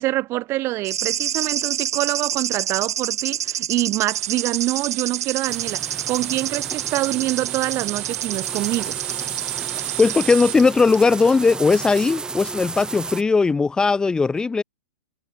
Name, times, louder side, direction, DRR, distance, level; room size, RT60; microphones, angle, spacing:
voice 1, 0.0-9.0, right 17 dB, 30° right, 1.7 m, -25 dB
sound 1, 0.8-10.6 10.9-11.0, right 10 dB, 75° right, 2.2 m, -28 dB
sound 2, 4.1-10.5, right 23 dB, 45° right, 4.7 m, -32 dB
sound 3, 5.5-13.2, right 4 dB, 10° right, 3.4 m, -34 dB
voice 2, 10.0-14.6, left 4 dB, 10° left, 2.1 m, -18 dB
hypercardioid pair, 145°, 9 cm